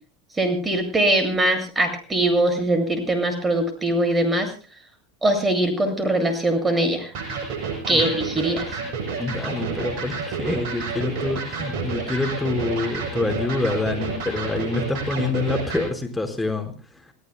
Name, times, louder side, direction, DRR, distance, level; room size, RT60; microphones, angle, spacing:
voice 1, 0.3-4.5 5.2-7.1 7.9-8.7, right 1 dB, 15° right, 6 dB, 7.7 m, -22 dB
Electric guitar, 7.1-15.9, right 4 dB, 55° right, 7.4 m, -30 dB
voice 2, 9.2-16.7, left 3 dB, 10° left, 3 dB, 4.9 m, -26 dB
29.0 x 17.5 x 2.3 m, 0.37 s
hypercardioid pair, 85°, 0 cm